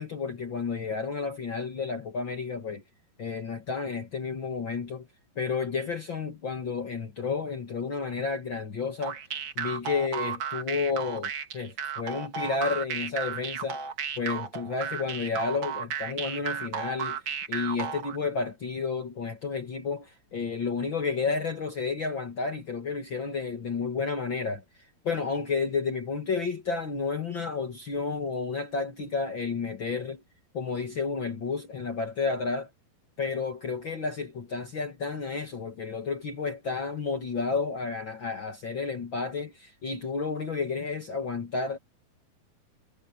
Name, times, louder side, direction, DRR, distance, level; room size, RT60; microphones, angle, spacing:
voice 1, 0.0-2.8 3.2-5.1 5.4-9.2 9.6-13.8 14.2-17.2 17.5-24.6 25.0-30.2 30.5-32.7 33.2-41.8, left 4 dB, 45° left, 1.7 m, -31 dB
sound 1, 9.0-18.2, right 7 dB, 50° right, 1.5 m, -34 dB
omnidirectional pair, 4.4 m